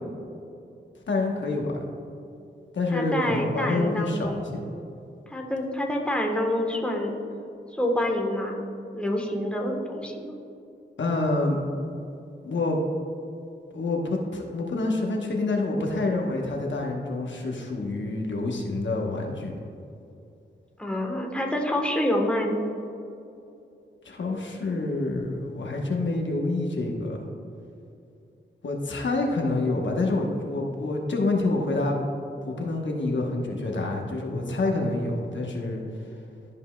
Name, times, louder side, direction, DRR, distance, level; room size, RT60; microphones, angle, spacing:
voice 1, 1.1-1.8 2.7-4.6 11.0-11.6 12.4-12.8 13.7-14.0 14.3-19.5 24.0-27.2 28.6-32.0 32.4-35.8, left 2 dB, 65° left, 0 dB, 1.0 m, -27 dB
voice 2, 2.9-4.5 5.3-7.2 7.7-8.6 8.9-10.3 20.8-22.6, left 1 dB, 5° left, 0 dB, 1.1 m, -27 dB
12.5 x 5.4 x 2.2 m, 2.6 s
cardioid pair, 55°, 20 cm